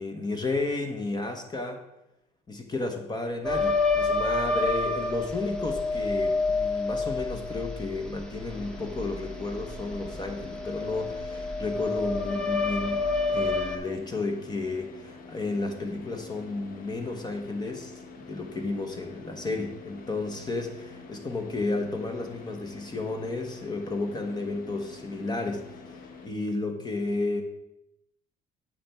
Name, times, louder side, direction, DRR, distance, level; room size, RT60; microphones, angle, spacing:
voice 1, 0.0-1.8 2.5-17.9 18.3-26.0 26.2-27.4, left 3 dB, 25° left, 5 dB, 1.2 m, -32 dB
sound 1, 3.4-13.8, left 3 dB, 5° left, 1.2 m, -29 dB
Car / Idling, 8.5-26.3, left 4 dB, 55° left, 1.1 m, -47 dB
7.6 x 5.7 x 4.5 m, 0.86 s
cardioid pair, 110°, 17 cm